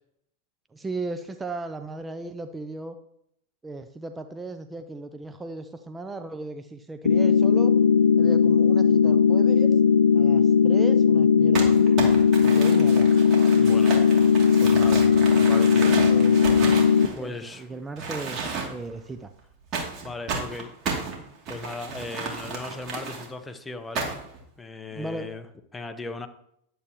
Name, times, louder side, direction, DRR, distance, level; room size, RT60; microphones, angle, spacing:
voice 1, 0.7-3.0 3.6-7.7 8.2-9.8 10.1-12.0 12.4-13.1 16.1-16.7 17.0-19.3 24.9-25.3, right 2 dB, 15° right, 8 dB, 0.6 m, -36 dB
sound 1, 7.1-17.1, left 6 dB, 85° left, 0.5 m, -18 dB
Crumpling crinkling, 11.5-17.6 18.0-18.9 19.7-23.3 23.9-24.4, right 4 dB, 40° right, 2.8 m, -32 dB
voice 2, 13.6-14.0 14.6-15.1 15.4-16.0 17.2-17.7 20.0-20.7 21.5-24.1 24.6-25.4 25.7-26.3, left 3 dB, 10° left, 7 dB, 1.0 m, -37 dB
11.0 x 8.3 x 3.1 m, 0.71 s
hypercardioid pair, 105°, 0 cm